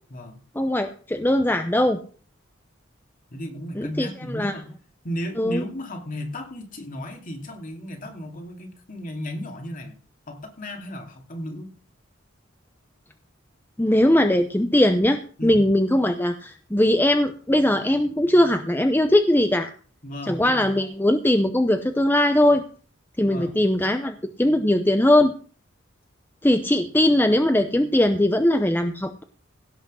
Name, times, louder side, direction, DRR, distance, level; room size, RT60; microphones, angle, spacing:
voice 1, 0.6-2.0 3.8-4.5 5.4-5.6 13.8-19.7 20.3-22.6 23.2-25.3 26.4-29.2, left 1 dB, 10° left, 7 dB, 0.7 m, -20 dB
voice 2, 3.3-4.8 5.0-10.0 10.3-11.7 15.4-15.6 20.0-20.8 23.2-23.6, equal, 45° left, 3 dB, 2.6 m, -35 dB
16.5 x 6.2 x 6.3 m, 0.41 s
head